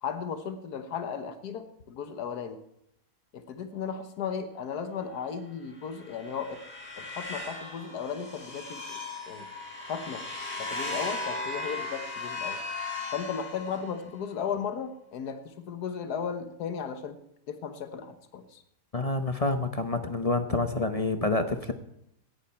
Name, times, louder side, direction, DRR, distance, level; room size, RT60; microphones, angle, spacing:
voice 1, 0.0-2.6 3.3-6.6 7.0-9.0 9.3-9.5 9.9-10.2 10.6-12.6 13.1-17.2 17.5-18.6, left 7 dB, 75° left, 8 dB, 1.7 m, -35 dB
sound 1, 5.8-14.1, left 3 dB, 5° left, 5.2 m, -37 dB
voice 2, 18.9-21.7, left 2 dB, 30° left, 8 dB, 0.7 m, -28 dB
17.0 x 11.0 x 4.4 m, 0.79 s
omnidirectional pair, 1.7 m